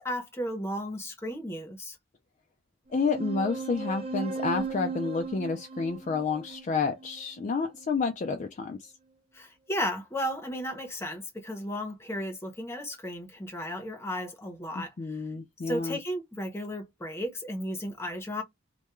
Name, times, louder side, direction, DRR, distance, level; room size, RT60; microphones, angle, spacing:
voice 1, 0.0-2.0 9.3-15.2 15.7-18.4, equal, 15° left, 0.7 m, -34 dB
voice 2, 2.9-8.9 14.8-16.0, left 4 dB, 35° left, 0.3 m, -30 dB
sound 1, 2.9-7.9, right 4 dB, 30° right, 0.6 m, -37 dB
2.2 x 2.2 x 2.9 m
head